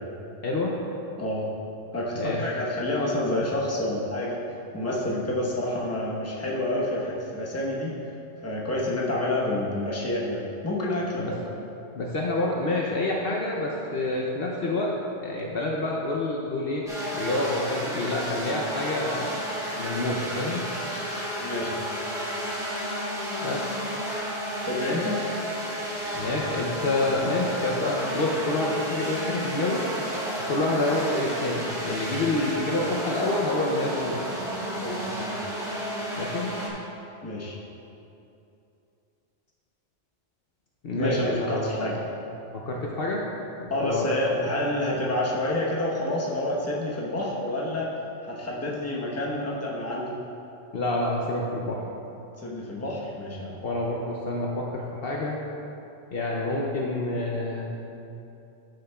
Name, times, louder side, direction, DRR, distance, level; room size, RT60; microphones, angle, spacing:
voice 1, 0.4-0.8 2.1-2.4 11.2-11.3 11.9-14.9 15.2-16.8 17.1-19.4 19.8-20.6 23.4-23.6 26.1-29.8 30.5-34.2 36.2-36.5 40.8-41.7 42.5-43.2 43.6-44.5 50.7-51.8 53.6-55.4 56.1-57.7, left 2 dB, 60° left, -2 dB, 0.9 m, -28 dB
voice 2, 1.9-4.4 4.7-8.0 8.4-11.4 21.4-21.9 24.6-25.2 34.8-35.5 37.2-37.6 40.9-42.0 43.7-47.9 48.3-50.2 52.4-53.6, left 1 dB, 15° left, -4 dB, 1.0 m, -28 dB
sound 1, 16.9-36.7, equal, 5° right, 1.3 m, -32 dB
12.0 x 6.5 x 2.3 m, 2.8 s
omnidirectional pair, 1.2 m